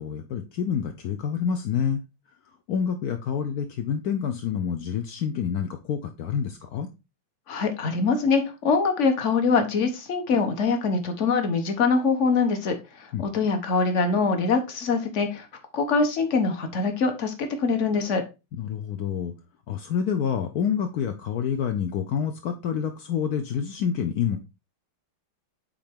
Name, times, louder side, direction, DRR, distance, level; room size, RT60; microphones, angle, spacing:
voice 1, 0.0-2.0 2.5-6.9 13.1-13.3 18.5-19.3 19.7-24.4, left 7 dB, 70° left, 0.9 m, -28 dB
voice 2, 7.5-15.5 15.7-18.2, left 4 dB, 45° left, 1.2 m, -24 dB
8.7 x 3.8 x 3.6 m
omnidirectional pair, 2.3 m